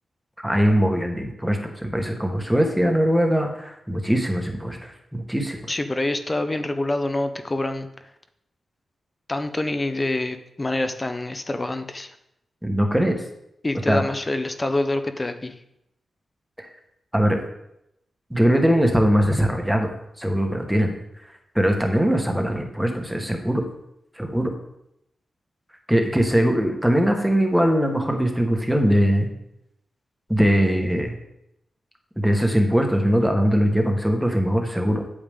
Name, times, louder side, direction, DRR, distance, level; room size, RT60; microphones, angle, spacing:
voice 1, 0.4-5.6 12.6-13.2 13.9-14.0 16.6-16.7 17.1-17.4 18.3-19.9 20.2-20.9 21.5-23.6 24.2-24.5 25.9-29.3 30.3-31.2 32.2-35.0, equal, 5° right, 3 dB, 1.3 m, -21 dB
voice 2, 5.7-7.9 9.3-12.1 13.6-15.5, left 2 dB, 20° left, 8 dB, 0.7 m, -26 dB
9.1 x 8.6 x 3.6 m, 0.81 s
wide cardioid pair, 135°, 0 cm